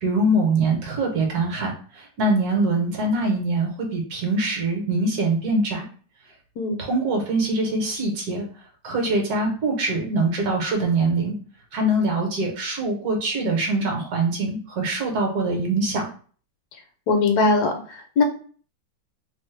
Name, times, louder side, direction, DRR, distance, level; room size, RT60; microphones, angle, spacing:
voice 1, 0.0-5.9 6.8-8.5 8.8-11.4 11.7-16.1, right 2 dB, 65° right, 1 dB, 1.2 m, -23 dB
voice 2, 17.1-18.2, left 3 dB, 75° left, 5 dB, 1.1 m, -21 dB
3.0 x 2.1 x 3.1 m, 0.42 s
omnidirectional pair, 1.9 m